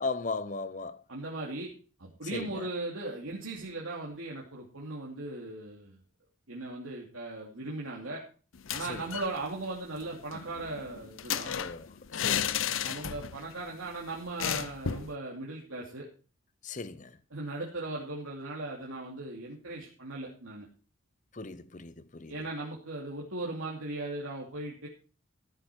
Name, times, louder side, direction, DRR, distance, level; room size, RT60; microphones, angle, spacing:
voice 1, 0.0-1.0 2.3-2.7 8.9-9.1 11.5-12.6 16.6-17.2 21.3-22.4, left 3 dB, 35° left, 0.7 m, -37 dB
voice 2, 1.1-1.7 2.0-6.0 6.5-8.2 8.7-11.5 12.8-16.1 17.3-20.7 22.3-24.9, right 2 dB, 85° right, 2.7 m, -38 dB
sound 1, 8.5-9.3 9.6-9.7 10.0-13.5 13.7-13.9 14.4-15.1, left 9 dB, 75° left, 0.6 m, -33 dB
14.5 x 9.0 x 4.5 m
head